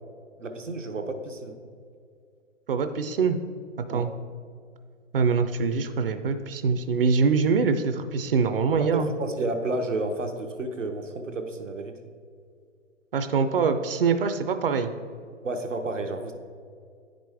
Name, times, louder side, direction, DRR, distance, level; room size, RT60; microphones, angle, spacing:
voice 1, 0.4-1.6 3.9-4.1 8.8-11.9 15.4-16.3, right 2 dB, 85° right, 5 dB, 0.9 m, -31 dB
voice 2, 2.7-3.4 3.9-4.1 5.1-9.1 13.1-14.9, right 5 dB, 50° right, 9 dB, 0.5 m, -24 dB
9.9 x 5.1 x 3.4 m, 2.2 s
figure-of-eight pair, 125°, 37 cm